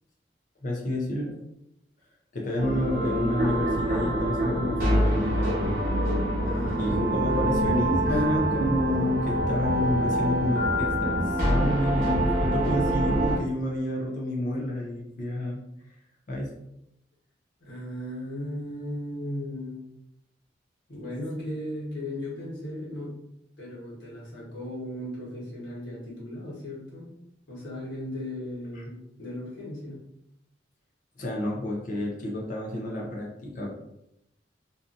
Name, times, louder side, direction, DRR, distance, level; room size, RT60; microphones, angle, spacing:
voice 1, 0.6-1.4 2.3-5.5 6.8-15.6 16.3-16.5 28.7-28.8 31.2-33.7, left 1 dB, 45° left, -2 dB, 0.5 m, -29 dB
sound 1, 2.6-13.4, right 1 dB, 55° right, 1.0 m, -25 dB
voice 2, 6.4-7.7 8.1-8.5 17.6-19.8 20.9-23.1 23.6-27.1 27.5-30.0, equal, 85° left, -6 dB, 1.2 m, -36 dB
2.6 x 2.4 x 2.5 m, 0.83 s
head